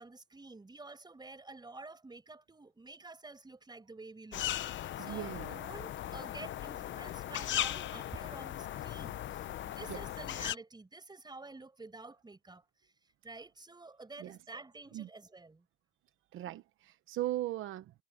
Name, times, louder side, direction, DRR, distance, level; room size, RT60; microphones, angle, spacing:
voice 1, 0.0-12.9 13.2-15.7, right 3 dB, 20° right, 5.7 m, -50 dB
sound 1, 4.3-10.5, left 12 dB, 70° left, 0.9 m, -38 dB
voice 2, 5.0-5.6 9.9-10.0 14.2-14.4 14.9-15.1 16.3-17.9, right 14 dB, 85° right, 1.0 m, -38 dB
cardioid pair, 90°, 20 cm